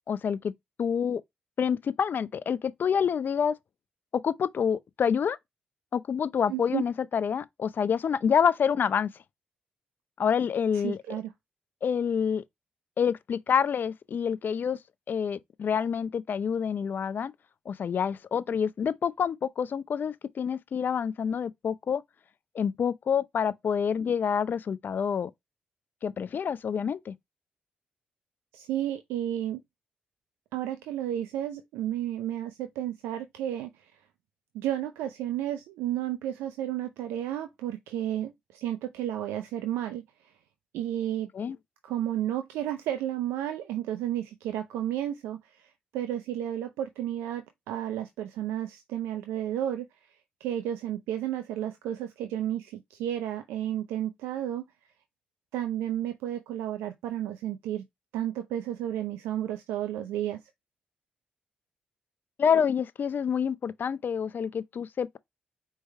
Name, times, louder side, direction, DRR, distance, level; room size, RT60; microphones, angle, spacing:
voice 1, 0.1-0.5 0.8-1.2 1.6-3.5 4.1-5.4 5.9-9.1 10.2-11.0 11.8-12.4 13.0-14.8 15.1-17.3 17.7-22.0 22.5-25.3 26.0-27.2 41.3-41.6 62.4-65.2, left 7 dB, 55° left, 0.5 m, -27 dB
voice 2, 6.5-6.8 10.7-11.3 28.5-29.6 30.5-33.9 34.5-40.0 40.7-41.3 41.8-49.9 50.4-54.6 55.5-57.8 58.1-60.4, right 11 dB, 80° right, 0.4 m, -32 dB
4.6 x 3.4 x 3.1 m
hypercardioid pair, 40°, 4 cm